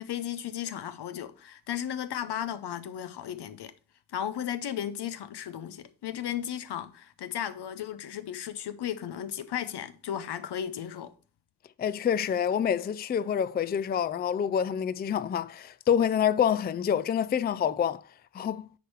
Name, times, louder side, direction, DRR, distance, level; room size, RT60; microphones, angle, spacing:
voice 1, 0.0-3.7 4.1-11.1, left 10 dB, 80° left, 0.8 m, -35 dB
voice 2, 11.8-18.0 18.3-18.7, left 8 dB, 25° left, 0.3 m, -27 dB
8.2 x 4.6 x 4.7 m
cardioid pair, 65°, 39 cm